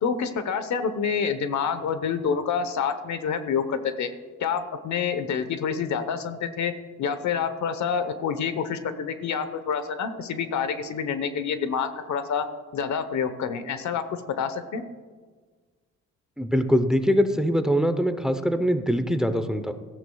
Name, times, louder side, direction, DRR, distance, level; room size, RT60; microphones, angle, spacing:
voice 1, 0.0-4.1 4.4-6.7 7.0-12.4 12.7-14.8, left 6 dB, 70° left, 10 dB, 1.1 m, -27 dB
voice 2, 16.4-19.7, equal, ahead, 9 dB, 0.7 m, -23 dB
17.5 x 14.0 x 2.3 m, 1.5 s
cardioid pair, 90°, 30 cm